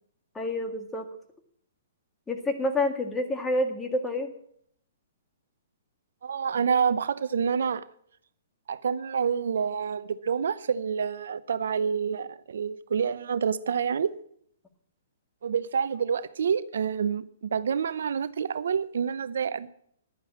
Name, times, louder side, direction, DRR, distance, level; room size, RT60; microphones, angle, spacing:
voice 1, 0.4-1.1 2.3-4.3, left 1 dB, 10° left, 6 dB, 1.7 m, -28 dB
voice 2, 6.2-7.8 8.7-14.1 15.4-19.7, right 7 dB, 70° right, 14 dB, 0.7 m, -28 dB
11.0 x 9.6 x 7.3 m, 0.65 s
hypercardioid pair, 135°, 0 cm